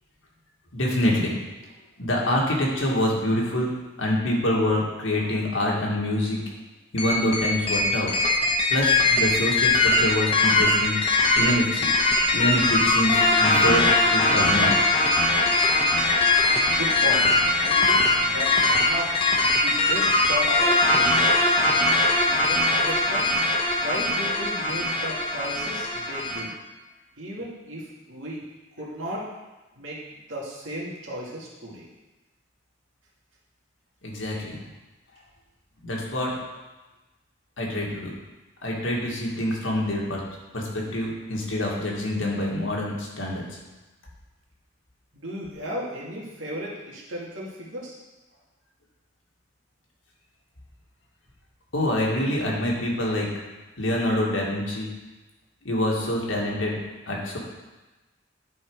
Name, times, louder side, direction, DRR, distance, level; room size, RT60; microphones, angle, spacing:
voice 1, 0.7-1.4 2.0-3.7 4.0-6.4 6.9-8.1 8.7-11.0 11.4-11.9 12.3-14.7 34.0-34.6 35.8-36.3 37.6-38.1 38.6-40.2 40.5-43.4 51.7-53.3 53.8-54.9 55.7-56.8 57.1-57.4, left 1 dB, 85° left, -2 dB, 1.8 m, -26 dB
sound 1, 7.0-26.4, left 2 dB, 30° left, 1.0 m, -21 dB
voice 2, 16.6-17.3 17.6-19.2 19.5-21.7 22.3-23.3 23.8-26.5 27.2-28.4 28.8-29.3 29.8-30.0 30.3-31.9 45.1-48.0, equal, 85° right, -4 dB, 2.2 m, -35 dB
10.5 x 4.4 x 4.7 m, 1.1 s
head